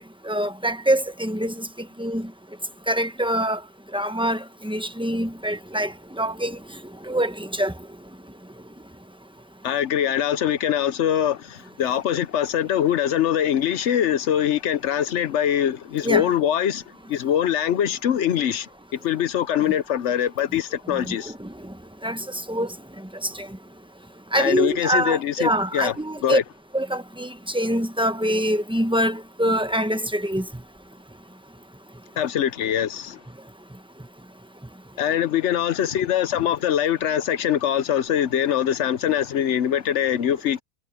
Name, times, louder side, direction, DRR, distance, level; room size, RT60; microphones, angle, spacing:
voice 1, 0.2-1.7 2.0-2.3 2.9-3.6 3.9-6.6 7.1-7.7 16.0-16.3 20.9-21.5 22.0-22.2 22.5-22.7 24.3-26.4 26.7-30.4, right 1 dB, 5° right, 0.8 m, -24 dB
voice 2, 9.6-16.8 17.1-21.3 24.3-25.9 26.2-26.4 32.2-33.2 35.0-40.6, left 10 dB, 60° left, 0.8 m, -23 dB
omnidirectional pair, 1.8 m